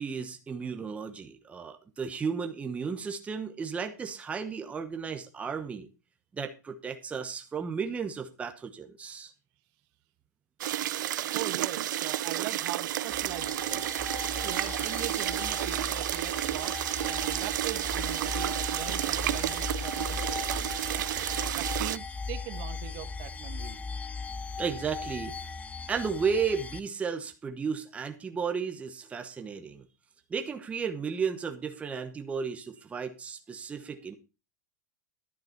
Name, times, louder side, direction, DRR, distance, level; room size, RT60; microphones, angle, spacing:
voice 1, 0.0-5.9 6.3-9.3 24.6-25.4 25.9-29.8 30.3-34.2, right 6 dB, 15° right, 1.0 m, -34 dB
sound 1, 10.6-22.0, right 13 dB, 80° right, 0.5 m, -31 dB
voice 2, 11.3-13.9 14.4-20.7 21.5-23.8, right 14 dB, 45° right, 1.2 m, -41 dB
sound 2, 13.1-26.8, left 4 dB, 15° left, 0.5 m, -38 dB
11.0 x 9.0 x 4.4 m
supercardioid pair, 145°, 10 cm